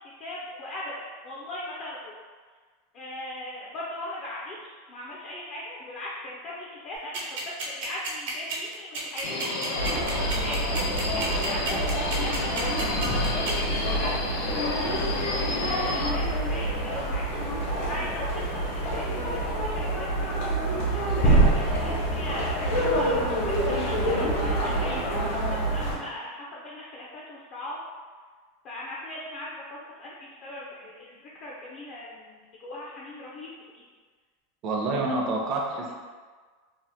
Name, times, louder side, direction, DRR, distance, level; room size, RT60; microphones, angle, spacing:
voice 1, 0.0-2.1 2.9-12.1 12.3-14.8 15.6-17.3 17.8-20.3 21.0-27.8 28.6-29.5 30.0-33.8, left 1 dB, 40° left, -5 dB, 0.5 m, -39 dB
sound 1, 7.1-13.5, right 4 dB, 75° right, 0.9 m, -32 dB
Subway metro underground, 9.2-16.1, left 3 dB, 90° left, 0.5 m, -32 dB
sound 2, 9.8-25.9, right 1 dB, 65° left, 1.0 m, -26 dB
voice 2, 34.6-35.9, right 2 dB, 40° right, -1 dB, 0.6 m, -27 dB
2.8 x 2.1 x 3.4 m, 1.5 s
supercardioid pair, 145°, 0 cm